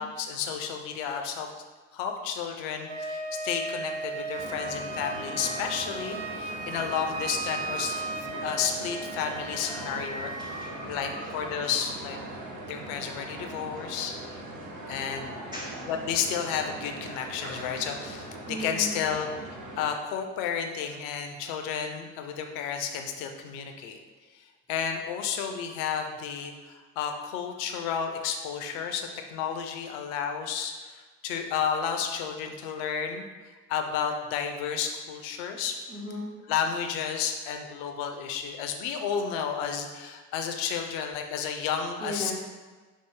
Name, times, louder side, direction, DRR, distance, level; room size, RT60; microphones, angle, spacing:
voice 1, 0.0-1.5 1.9-8.0 8.4-10.3 10.6-12.2 12.7-14.4 14.9-15.4 15.9-19.3 19.8-24.0 24.3-33.3 33.7-35.7 36.5-42.3, left 7 dB, 50° left, 4 dB, 0.5 m, -32 dB
Wind instrument woodwind instrument, 2.8-10.7, right 2 dB, 75° right, 0.7 m, -36 dB
sound 1, 4.3-19.9, right 1 dB, 40° right, 0.8 m, -40 dB
voice 2, 10.4-10.7 15.5-15.9 18.4-19.0 35.9-36.3 42.0-42.3, equal, 10° right, -6 dB, 0.4 m, -36 dB
5.4 x 2.0 x 3.1 m, 1.3 s
figure-of-eight pair, 60°, 49 cm